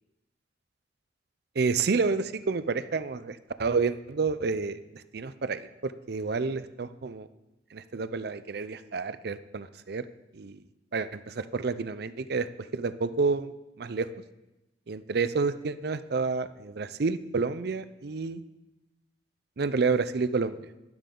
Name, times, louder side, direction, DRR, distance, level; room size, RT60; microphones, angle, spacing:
voice 1, 1.6-7.3 7.7-10.1 10.3-10.6 10.9-12.5 12.7-13.5 13.8-14.1 14.9-18.4 19.6-20.7, right 4 dB, 60° right, 13 dB, 0.5 m, -29 dB
12.0 x 11.0 x 3.8 m, 0.98 s
head